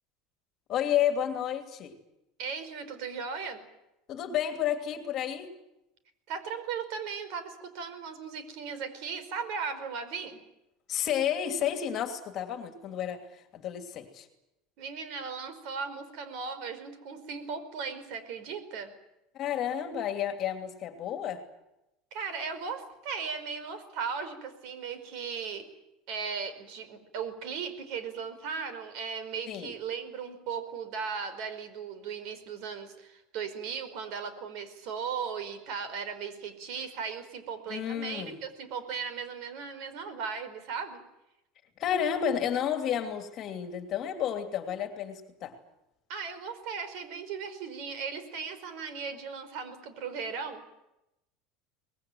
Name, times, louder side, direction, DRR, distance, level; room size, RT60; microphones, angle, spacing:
voice 1, 0.7-1.9 4.1-5.5 10.9-14.3 19.3-21.4 29.5-29.7 37.7-38.4 41.8-45.5, left 9 dB, 35° left, 7 dB, 2.8 m, -31 dB
voice 2, 2.4-3.6 6.3-10.4 14.8-18.9 22.1-25.7 26.1-41.0 46.1-50.7, right 6 dB, 60° right, 11 dB, 5.0 m, -37 dB
24.5 x 20.5 x 9.4 m, 0.89 s
supercardioid pair, 150°, 0 cm